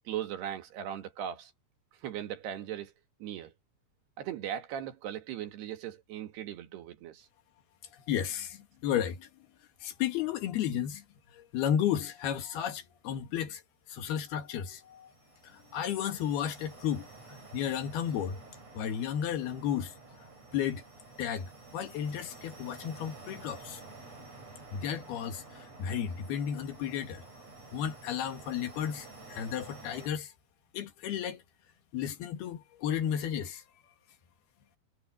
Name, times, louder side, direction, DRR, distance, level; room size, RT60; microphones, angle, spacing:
voice 1, 0.1-1.5 2.0-2.9 3.2-3.5 4.2-7.3, right 10 dB, 75° right, 3.8 m, -38 dB
voice 2, 7.9-9.3 9.8-11.0 11.3-13.6 13.9-15.1 15.4-17.1 17.5-18.4 18.8-19.9 20.5-20.8 21.2-23.8 24.7-27.2 27.7-30.3 30.7-31.4 31.9-33.6, left 9 dB, 70° left, 3.6 m, -33 dB
sound 1, 14.4-30.1, right 3 dB, 40° right, 7.2 m, -51 dB
omnidirectional pair, 4.9 m